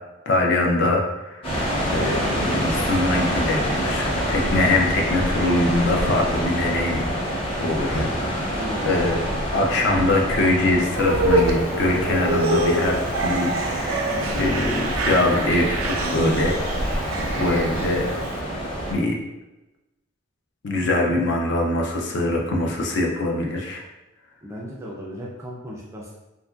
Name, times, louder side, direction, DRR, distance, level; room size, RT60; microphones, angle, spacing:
voice 1, 0.3-1.4 1.8-7.1 7.6-8.6 8.8-9.2 9.5-14.1 14.3-17.0 17.4-18.0 18.9-19.2 20.6-23.8, left 2 dB, 55° left, 1 dB, 0.4 m, -23 dB
sound 1, 1.4-18.9, equal, 25° left, 0.7 m, -26 dB
voice 2, 8.6-9.0 24.4-26.1, equal, 15° right, -4 dB, 0.3 m, -35 dB
sound 2, 10.9-18.3, right 2 dB, 85° right, 0.4 m, -26 dB
2.8 x 2.5 x 2.3 m, 1.0 s
head